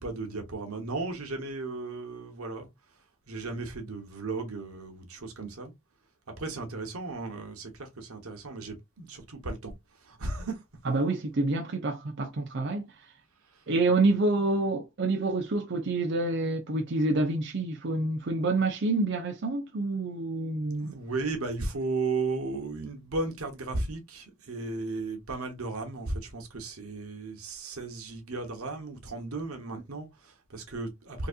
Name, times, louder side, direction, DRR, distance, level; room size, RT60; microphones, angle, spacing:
voice 1, 0.0-2.7 3.3-5.7 6.3-9.7 10.0-10.6 13.5-14.2 20.8-31.3, right 3 dB, 90° right, 1.2 m, -35 dB
voice 2, 10.8-12.9 13.7-20.9, right 2 dB, 55° right, 0.6 m, -27 dB
3.9 x 2.7 x 2.4 m
head